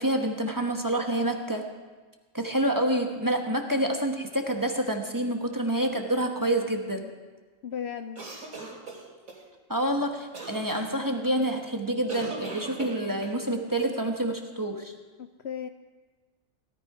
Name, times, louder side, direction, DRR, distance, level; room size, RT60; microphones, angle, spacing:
voice 1, 0.0-1.6 2.3-7.1 9.7-14.9, right 1 dB, 15° right, 3 dB, 1.1 m, -27 dB
voice 2, 7.6-8.3 15.2-15.7, left 8 dB, 65° left, 8 dB, 0.8 m, -35 dB
sound 1, 8.1-9.4 10.3-10.8 12.1-13.4, right 3 dB, 90° right, 3.2 m, -38 dB
17.5 x 13.0 x 4.9 m, 1.4 s
omnidirectional pair, 1.4 m